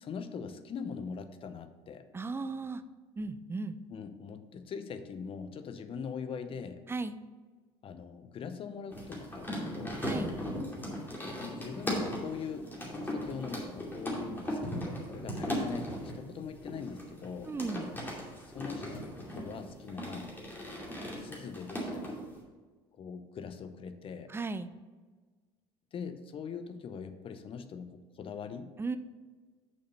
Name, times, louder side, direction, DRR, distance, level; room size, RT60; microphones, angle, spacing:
voice 1, 0.0-2.1 3.9-6.8 7.8-10.0 11.4-12.7 13.0-17.5 18.5-18.9 19.3-20.3 21.0-22.2 22.9-24.3 25.9-28.7, left 6 dB, 45° left, 10 dB, 0.7 m, -42 dB
voice 2, 2.1-2.8 3.2-3.8 6.9-7.2 10.0-10.3 17.5-17.9 24.3-24.7 28.8-29.0, right 3 dB, 15° right, 12 dB, 0.5 m, -35 dB
sound 1, 8.9-22.4, equal, 15° left, 2.5 m, -38 dB
6.5 x 5.5 x 5.4 m, 1.4 s
hypercardioid pair, 80°, 13 cm